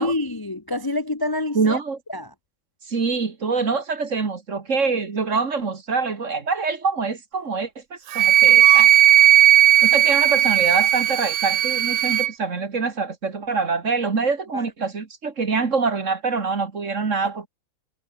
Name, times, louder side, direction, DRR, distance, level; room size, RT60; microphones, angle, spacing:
voice 1, 0.0-1.8 2.1-2.3 14.5-14.6, left 2 dB, 20° left, 0.7 m, -26 dB
voice 2, 1.5-2.0 2.9-8.9 9.8-17.5, right 4 dB, 40° right, 2.2 m, -25 dB
Wind instrument woodwind instrument, 8.1-12.3, right 12 dB, 80° right, 1.6 m, -16 dB
omnidirectional pair, 2.1 m